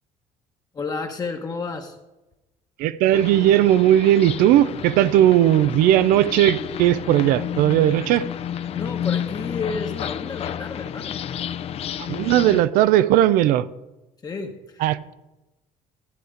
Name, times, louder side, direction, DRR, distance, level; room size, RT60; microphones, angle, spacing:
voice 1, 0.7-1.9 8.6-11.2 14.2-14.8, left 4 dB, 25° left, 1.1 m, -31 dB
voice 2, 2.8-8.2 12.0-13.7 14.8-15.1, right 12 dB, 85° right, 0.6 m, -17 dB
sound 1, 3.1-12.6, left 9 dB, 45° left, 0.6 m, -31 dB
14.0 x 8.1 x 5.0 m
cardioid pair, 140°, 14 cm